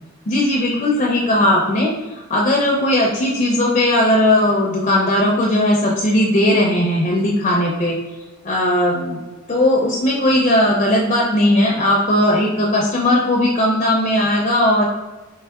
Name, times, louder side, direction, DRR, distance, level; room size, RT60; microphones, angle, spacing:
voice 1, 0.3-1.9 2.3-8.0 8.4-9.1 9.5-14.8, left 1 dB, 30° left, -2 dB, 0.5 m, -17 dB
4.4 x 3.1 x 2.3 m, 1.2 s
head